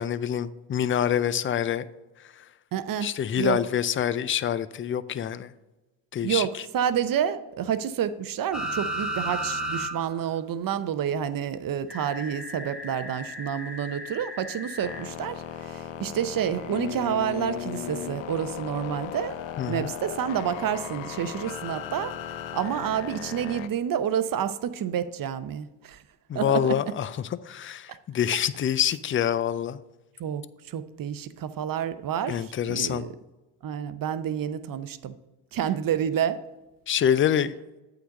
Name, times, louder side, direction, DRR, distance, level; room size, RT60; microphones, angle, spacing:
voice 1, 0.0-1.8 3.0-5.5 6.1-6.5 19.6-19.9 26.3-29.8 32.3-33.1 36.9-37.5, left 9 dB, 25° left, 16 dB, 0.4 m, -26 dB
voice 2, 2.7-3.1 3.4-3.6 6.2-19.3 19.7-22.1 22.5-26.0 26.3-26.8 30.2-33.1 33.6-35.1 35.5-36.4, right 9 dB, 45° right, 12 dB, 0.7 m, -29 dB
sound 1, 8.5-9.9 10.2-10.3 11.9-15.0 16.7-16.8, right 1 dB, ahead, 1.5 m, -34 dB
sound 2, 14.8-23.7, left 10 dB, 65° left, 0.8 m, -36 dB
8.4 x 4.0 x 6.4 m, 1.1 s
supercardioid pair, 65°, 48 cm